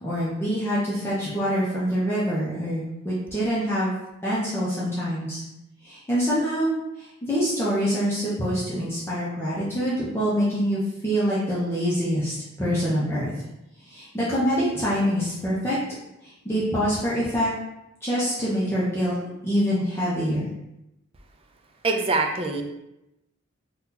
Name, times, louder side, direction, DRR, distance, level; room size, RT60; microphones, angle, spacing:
voice 1, 0.0-3.9 4.2-5.4 5.8-13.3 13.9-15.8 16.2-17.5 18.0-19.2 19.4-20.5, equal, 10° left, -9 dB, 0.6 m, -25 dB
voice 2, 21.8-22.6, right 3 dB, 25° right, 4 dB, 0.3 m, -24 dB
2.7 x 2.3 x 3.7 m, 0.90 s
head